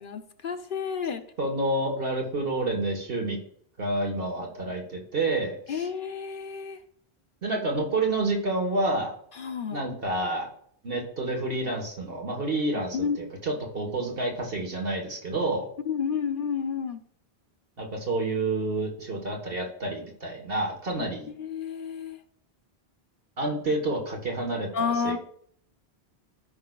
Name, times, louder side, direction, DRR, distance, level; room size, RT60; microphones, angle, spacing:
voice 1, 0.0-1.2 5.7-6.8 9.4-9.8 12.9-13.2 15.8-17.0 21.3-22.2 24.7-25.2, left 6 dB, 60° left, 7 dB, 1.0 m, -30 dB
voice 2, 1.4-3.4 3.8-5.9 7.4-9.1 9.7-10.5 10.8-15.7 17.8-21.3 23.4-25.1, right 2 dB, 65° right, 2 dB, 1.5 m, -29 dB
14.0 x 5.6 x 2.3 m, 0.63 s
omnidirectional pair, 1.0 m